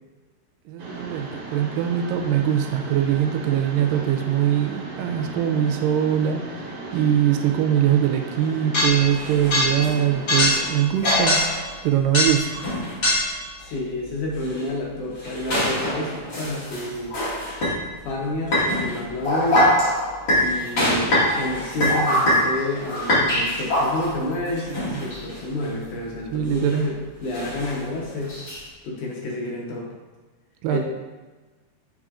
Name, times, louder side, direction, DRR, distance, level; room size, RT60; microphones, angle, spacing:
voice 1, 0.7-11.4 11.8-12.6 24.7-25.0 26.3-26.9 30.6-30.8, right 10 dB, 90° right, 5 dB, 2.3 m, -22 dB
Mechanisms, 0.8-10.7, right 2 dB, 55° right, 2.4 m, -36 dB
sound 1, 8.7-9.9 10.3-13.4 14.4-14.6 15.2-17.8 18.5-24.2 24.6-25.4 26.5-26.8 27.3-28.6, left 1 dB, 40° left, 2.1 m, -23 dB
voice 2, 13.6-17.1 18.0-19.7 20.4-28.3 28.8-29.9 30.7-30.8, left 1 dB, 70° left, -2 dB, 2.4 m, -29 dB
7.3 x 5.4 x 2.5 m, 1.3 s
omnidirectional pair, 3.9 m